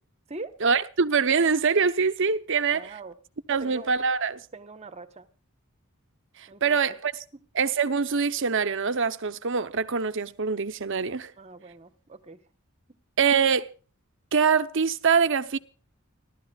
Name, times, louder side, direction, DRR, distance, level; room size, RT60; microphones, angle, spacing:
voice 1, 0.6-2.9 3.5-4.4 6.4-7.1 7.6-11.3 13.2-13.7 14.3-15.6, right 5 dB, 60° right, 0.8 m, -24 dB
voice 2, 2.6-3.2 3.6-3.9 4.5-5.3 6.5-7.0 7.3-7.4 11.4-12.4, right 3 dB, 30° right, 1.1 m, -42 dB
30.0 x 12.5 x 2.4 m
head